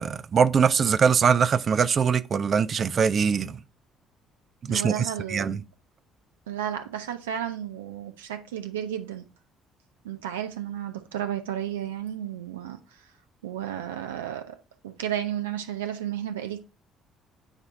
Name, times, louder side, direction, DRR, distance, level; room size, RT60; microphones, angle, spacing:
voice 1, 0.0-3.6 4.6-5.6, right 6 dB, 40° right, 0.4 m, -22 dB
voice 2, 4.7-5.5 6.5-9.3 10.0-12.8 13.4-14.6 14.8-16.6, right 10 dB, 75° right, 0.8 m, -32 dB
8.8 x 3.1 x 3.8 m
figure-of-eight pair, 50°, 0 cm